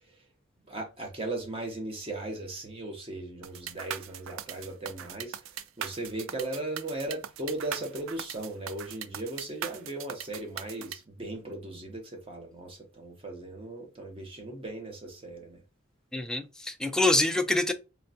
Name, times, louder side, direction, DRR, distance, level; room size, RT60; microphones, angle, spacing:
voice 1, 0.7-5.3 5.8-15.6, right 2 dB, 25° right, 0.7 m, -37 dB
sound 1, 3.4-11.0, right 9 dB, 75° right, 0.3 m, -39 dB
voice 2, 16.1-17.7, left 2 dB, 5° left, 0.3 m, -26 dB
4.3 x 2.2 x 2.6 m
head